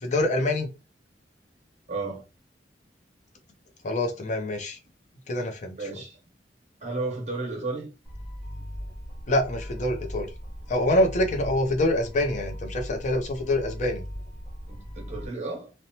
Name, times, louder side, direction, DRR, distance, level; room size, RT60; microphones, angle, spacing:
voice 1, 0.0-0.7 3.8-4.8 5.3-5.7 9.3-10.3 10.7-14.0, left 1 dB, 45° left, 0.5 m, -25 dB
voice 2, 1.9-2.2 5.8-6.2 6.8-7.9 14.7-15.7, right 3 dB, 40° right, 1.0 m, -33 dB
sound 1, 8.0-15.3, equal, 5° left, 1.4 m, -38 dB
2.8 x 2.1 x 2.8 m
head